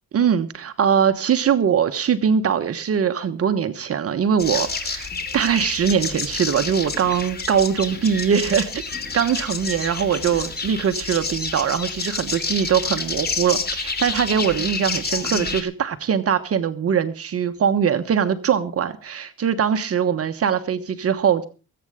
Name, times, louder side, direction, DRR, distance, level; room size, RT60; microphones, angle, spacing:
voice 1, 0.1-8.9 9.1-21.4, right 7 dB, 50° right, 8 dB, 1.2 m, -22 dB
sound 1, 4.4-15.6, left 4 dB, 30° left, 2.9 m, -29 dB
21.0 x 8.7 x 5.0 m, 0.36 s
cardioid pair, 90°, 30 cm